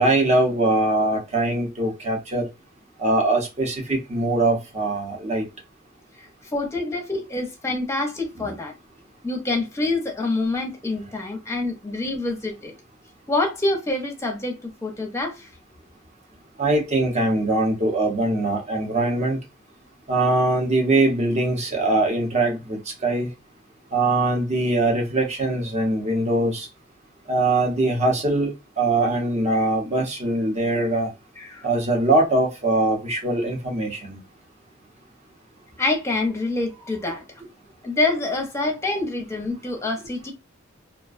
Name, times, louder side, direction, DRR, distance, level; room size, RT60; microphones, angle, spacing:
voice 1, 0.0-2.5 3.0-5.5 8.4-8.5 16.6-19.4 20.1-23.3 23.9-26.7 27.3-31.1 31.6-34.2, right 2 dB, 35° right, 0.8 m, -22 dB
voice 2, 6.4-8.7 9.2-12.7 13.3-15.5 29.5-29.7 31.4-31.7 35.8-37.2 37.8-40.3, left 2 dB, 15° left, 0.6 m, -26 dB
2.4 x 2.2 x 2.4 m
head